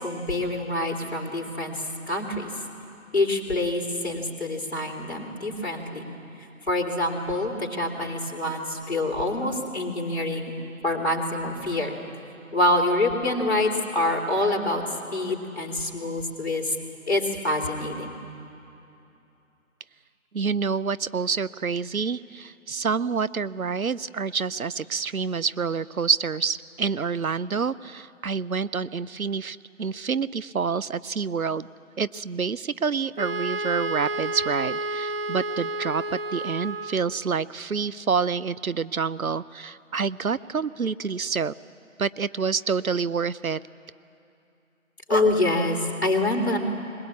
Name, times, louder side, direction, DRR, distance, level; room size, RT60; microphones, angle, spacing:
voice 1, 0.0-2.5 3.1-6.1 6.7-10.5 10.8-11.9 12.5-14.8 15.1-16.7 17.1-18.2 45.1-46.6, left 2 dB, 50° left, -1 dB, 3.4 m, -26 dB
voice 2, 20.3-31.7 32.0-41.5 42.0-43.6, right 5 dB, 80° right, 17 dB, 0.7 m, -27 dB
Wind instrument woodwind instrument, 33.2-37.2, right 2 dB, 45° right, 0.8 m, -30 dB
21.5 x 21.0 x 8.5 m, 2.7 s
figure-of-eight pair, 170°, 42 cm